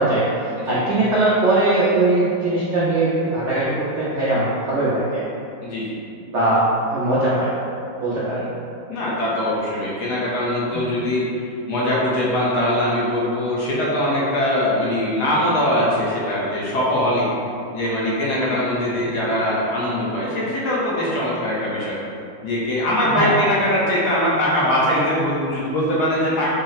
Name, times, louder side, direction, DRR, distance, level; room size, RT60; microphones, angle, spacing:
voice 1, 0.0-5.2 6.3-6.6 6.9-7.5 8.0-8.5 18.9-19.0 23.0-23.3, right 2 dB, 85° right, -9 dB, 0.6 m, -20 dB
voice 2, 5.6-6.0 8.4-8.5 8.9-11.3 11.7-17.3 17.7-22.0 22.4-26.5, left 1 dB, 65° left, -7 dB, 1.2 m, -22 dB
3.9 x 2.0 x 3.9 m, 2.6 s
omnidirectional pair, 2.0 m